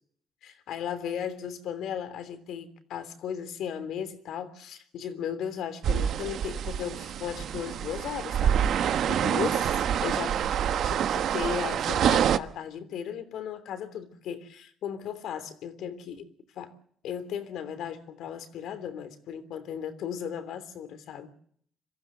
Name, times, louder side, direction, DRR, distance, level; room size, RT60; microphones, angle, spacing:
voice 1, 0.4-8.6 9.1-16.7 17.0-21.4, left 8 dB, 80° left, 3.2 m, -36 dB
sound 1, 5.8-12.4, right 9 dB, 70° right, 1.2 m, -26 dB
26.0 x 15.0 x 7.6 m
cardioid pair, 90°, 0 cm